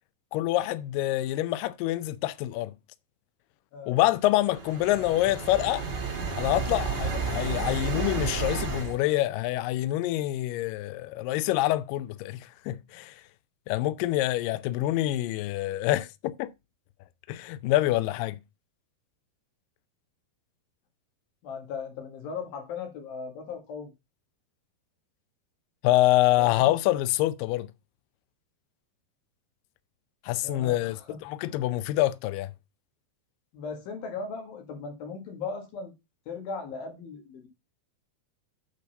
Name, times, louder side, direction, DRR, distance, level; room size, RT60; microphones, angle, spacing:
voice 1, 0.3-2.7 3.9-5.9 6.4-13.2 13.7-16.5 17.3-18.4 25.8-27.7 30.3-32.5, left 15 dB, 90° left, 1.9 m, -26 dB
sound 1, 4.3-9.0, right 5 dB, 35° right, 2.1 m, -32 dB
voice 2, 8.9-9.3 21.4-23.9 30.4-31.2 31.5-31.6 33.5-35.9 36.3-37.5, left 5 dB, 70° left, 3.5 m, -38 dB
8.5 x 4.1 x 5.5 m
omnidirectional pair, 4.6 m